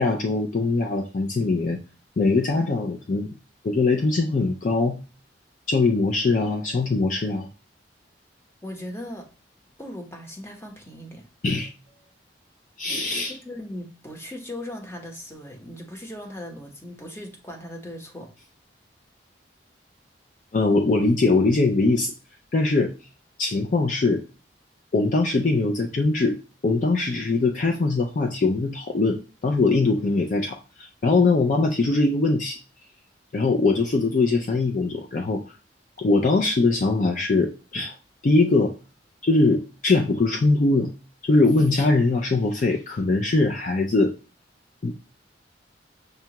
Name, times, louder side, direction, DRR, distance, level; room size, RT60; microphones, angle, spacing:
voice 1, 0.0-1.8 2.2-3.3 3.6-5.0 5.7-7.5 11.4-11.7 12.8-13.3 20.5-22.1 22.5-22.9 23.4-24.2 24.9-26.4 26.6-32.6 33.3-35.4 36.0-37.9 38.2-38.7 39.2-40.9 41.3-44.1 44.8-45.2, left 3 dB, 45° left, 3 dB, 0.4 m, -22 dB
voice 2, 8.6-9.3 9.8-11.2 13.3-18.3, left 1 dB, 15° left, 2 dB, 0.8 m, -38 dB
6.6 x 2.3 x 2.9 m, 0.33 s
head